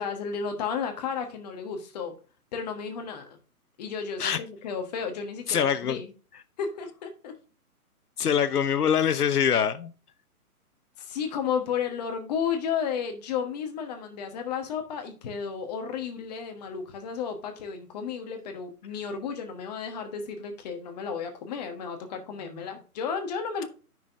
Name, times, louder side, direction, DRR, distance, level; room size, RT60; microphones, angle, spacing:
voice 1, 0.0-2.1 2.5-3.4 3.8-6.1 6.6-7.4 11.0-23.6, left 6 dB, 25° left, 5 dB, 1.3 m, -33 dB
voice 2, 5.5-6.0 8.2-9.9, left 8 dB, 80° left, 11 dB, 1.0 m, -24 dB
9.4 x 6.0 x 2.6 m, 0.35 s
hypercardioid pair, 150°, 45 cm